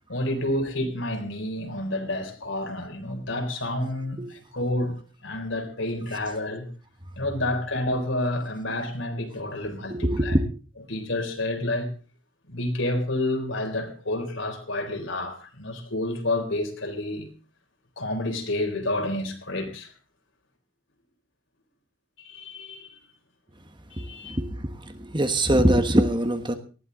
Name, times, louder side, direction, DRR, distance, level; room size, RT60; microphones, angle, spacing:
voice 1, 0.1-6.7 7.2-10.4 10.9-11.9 12.5-17.3 18.0-19.9 22.2-23.0 23.9-24.4, left 1 dB, 65° left, 3.6 m, -29 dB
voice 2, 9.9-10.4 24.0-26.5, right 1 dB, 20° right, 1.3 m, -23 dB
19.5 x 14.0 x 3.9 m
head